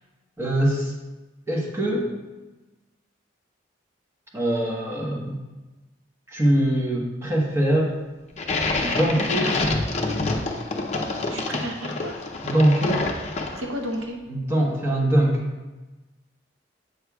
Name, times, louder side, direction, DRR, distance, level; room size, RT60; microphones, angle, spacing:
voice 1, 0.4-0.9 1.5-2.2 4.3-5.4 6.3-8.0 8.8-9.5 12.4-13.0 14.3-15.4, right 1 dB, 15° right, -3 dB, 1.0 m, -22 dB
sound 1, 8.4-13.9, left 2 dB, 35° left, 0.6 m, -27 dB
voice 2, 11.3-12.1 13.6-14.2, equal, 85° right, 2 dB, 0.7 m, -31 dB
8.1 x 6.5 x 2.3 m, 1.2 s
head